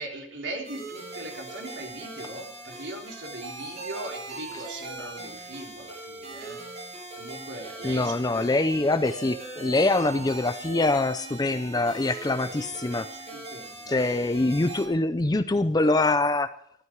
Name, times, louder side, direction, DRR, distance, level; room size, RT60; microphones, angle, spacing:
voice 1, 0.0-6.6 7.2-8.6 12.4-12.6 13.1-14.0, right 2 dB, 85° right, 1 dB, 3.8 m, -40 dB
sound 1, 0.6-14.9, right 2 dB, 35° right, 7.4 m, -40 dB
voice 2, 7.8-13.1 13.9-16.5, left 2 dB, 20° left, 11 dB, 0.6 m, -24 dB
16.0 x 13.0 x 4.7 m, 0.69 s
head